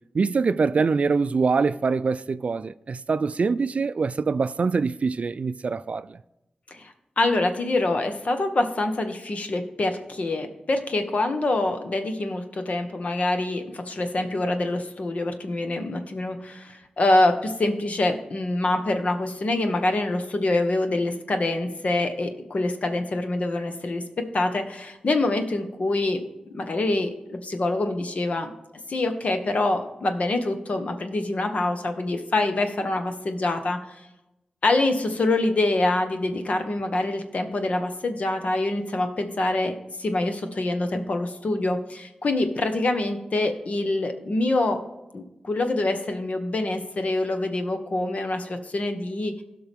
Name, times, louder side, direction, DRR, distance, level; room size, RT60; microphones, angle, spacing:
voice 1, 0.1-6.2, right 4 dB, 55° right, 0.3 m, -24 dB
voice 2, 6.7-26.2 26.5-28.5 28.9-33.8 34.6-44.8 45.1-49.4, left 2 dB, 60° left, 1.3 m, -25 dB
16.5 x 5.8 x 3.6 m
cardioid pair, 60°, 3 cm